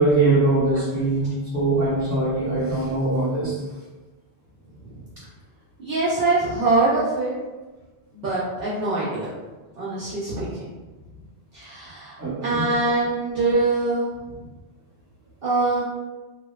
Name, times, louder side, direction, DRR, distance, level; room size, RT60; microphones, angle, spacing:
voice 1, 0.0-3.6 12.2-12.6, right 2 dB, 15° right, -9 dB, 1.0 m, -22 dB
voice 2, 5.8-7.3 8.1-9.3 9.8-10.7 11.5-14.1 15.4-15.8, right 3 dB, 60° right, -8 dB, 0.7 m, -23 dB
2.7 x 2.1 x 2.2 m, 1.2 s
omnidirectional pair, 1.1 m